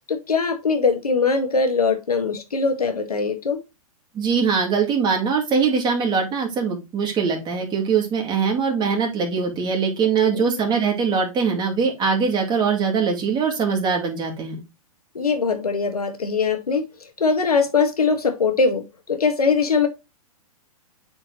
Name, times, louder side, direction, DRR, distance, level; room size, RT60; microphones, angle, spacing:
voice 1, 0.1-3.6 10.2-10.4 15.2-19.9, left 4 dB, 85° left, 1.7 m, -21 dB
voice 2, 4.1-14.6, right 5 dB, 25° right, 2.6 m, -22 dB
8.5 x 4.6 x 3.0 m
hypercardioid pair, 115°, 19 cm